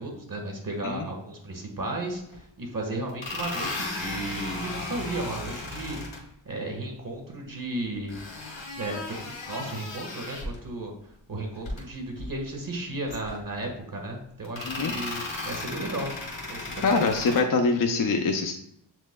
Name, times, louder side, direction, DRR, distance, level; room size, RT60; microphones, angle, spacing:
voice 1, 0.0-6.0 6.4-8.2 8.8-10.9 11.3-16.1 16.5-16.8, right 2 dB, 45° right, 1 dB, 1.6 m, -34 dB
sound 1, 2.3-2.4 3.1-6.2 8.1-10.6 11.5-11.8 12.2-12.3 13.1-13.7 14.4-17.4, left 2 dB, 65° left, 1.4 m, -35 dB
voice 2, 16.8-18.5, left 4 dB, 45° left, 4 dB, 0.6 m, -24 dB
7.3 x 3.1 x 2.3 m, 0.74 s
cardioid pair, 50°, 47 cm